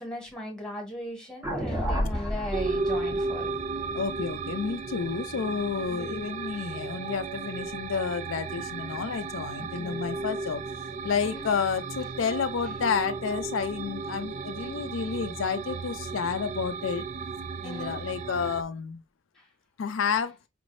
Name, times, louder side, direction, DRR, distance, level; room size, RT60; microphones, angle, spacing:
voice 1, 0.0-3.5 5.9-6.2 9.8-10.0 11.2-11.5 17.6-18.0, equal, 5° left, 1.6 m, -38 dB
sound 1, 1.4-5.7, equal, 10° right, 1.1 m, -33 dB
sound 2, 2.5-18.6, right 4 dB, 35° right, 0.4 m, -34 dB
voice 2, 3.9-10.6 11.0-17.0 17.6-19.0 19.8-20.4, left 6 dB, 75° left, 0.4 m, -30 dB
5.1 x 3.2 x 2.5 m
head